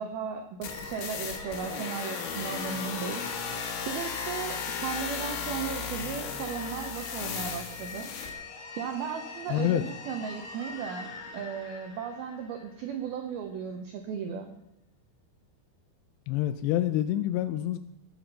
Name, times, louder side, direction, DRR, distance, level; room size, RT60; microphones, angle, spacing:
voice 1, 0.0-3.2 3.9-8.1 8.8-14.5, right 7 dB, 80° right, 4 dB, 2.2 m, -36 dB
sound 1, 0.6-8.3, left 6 dB, 70° left, 3.8 m, -36 dB
sound 2, 0.6-13.1, left 3 dB, 50° left, 2.6 m, -42 dB
voice 2, 9.5-9.8 16.3-17.8, left 13 dB, 90° left, 10 dB, 2.4 m, -27 dB
19.0 x 7.1 x 5.6 m, 0.82 s
omnidirectional pair, 5.5 m